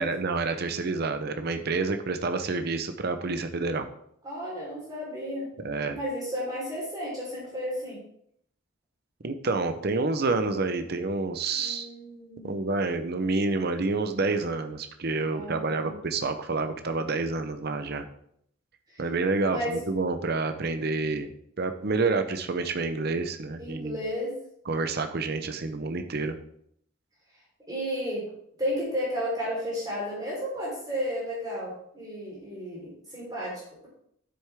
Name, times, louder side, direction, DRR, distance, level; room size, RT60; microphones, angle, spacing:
voice 1, 0.0-3.9 5.6-6.0 9.2-11.9 12.4-18.0 19.0-21.3 21.6-24.0 24.7-26.4, right 3 dB, 50° right, 8 dB, 0.7 m, -28 dB
voice 2, 4.2-5.5 5.9-8.0 11.6-12.6 15.3-15.9 19.5-19.8 23.6-24.3 27.7-28.2 28.6-33.9, equal, 20° right, -5 dB, 3.8 m, -33 dB
9.8 x 7.8 x 3.5 m, 0.70 s
head